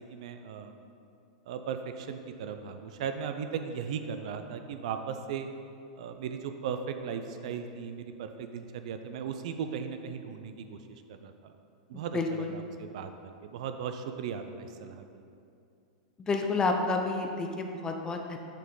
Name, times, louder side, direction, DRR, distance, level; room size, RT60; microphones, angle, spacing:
voice 1, 0.1-0.7 1.5-5.5 6.0-11.5 11.9-13.1 13.4-15.4, right 7 dB, 65° right, 7 dB, 0.5 m, -37 dB
voice 2, 12.1-12.5 16.3-18.4, left 3 dB, 20° left, 4 dB, 0.6 m, -29 dB
6.6 x 5.1 x 3.8 m, 2.6 s
hypercardioid pair, 130°, 4 cm